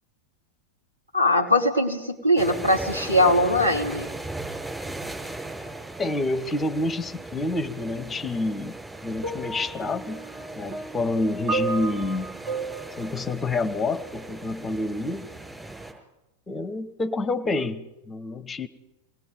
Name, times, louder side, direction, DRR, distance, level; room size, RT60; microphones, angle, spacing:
voice 1, 1.1-4.1, left 1 dB, 85° right, 3.2 m, -21 dB
sound 1, 2.4-15.9, right 2 dB, 5° right, 5.7 m, -38 dB
voice 2, 6.0-8.8 9.0-10.3 10.5-12.3 13.0-15.3 16.5-18.7, left 2 dB, 15° left, 1.1 m, -28 dB
sound 2, 9.2-14.3 15.2-15.4, right 3 dB, 40° right, 3.6 m, -34 dB
27.0 x 19.5 x 5.3 m
figure-of-eight pair, 90°, 0 cm